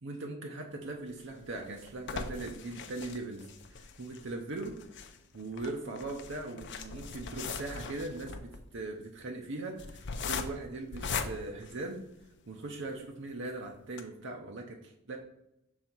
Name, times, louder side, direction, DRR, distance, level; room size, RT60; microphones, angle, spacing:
voice 1, 0.0-5.1 5.3-12.0 12.5-15.2, right 2 dB, 65° right, 1 dB, 0.7 m, -40 dB
sound 1, 1.1-12.5 13.0-13.1 13.4-13.5 13.9-14.0, left 5 dB, 60° left, 0.5 m, -40 dB
6.3 x 4.1 x 4.5 m, 0.85 s
head